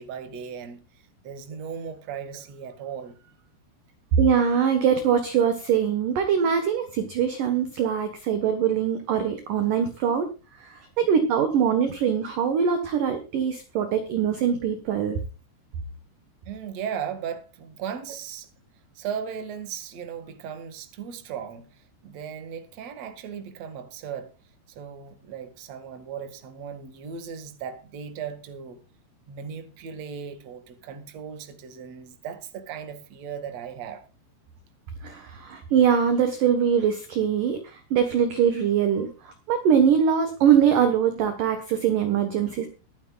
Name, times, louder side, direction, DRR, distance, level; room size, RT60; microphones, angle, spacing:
voice 1, 0.0-3.3 16.5-18.5 18.9-24.3 24.7-28.8 29.3-34.0, right 7 dB, 50° right, 2.1 m, -37 dB
voice 2, 4.2-10.3 10.6-15.2 35.0-39.1 39.5-42.7, right 8 dB, 65° right, 2.1 m, -22 dB
23.5 x 9.3 x 2.4 m
omnidirectional pair, 5.6 m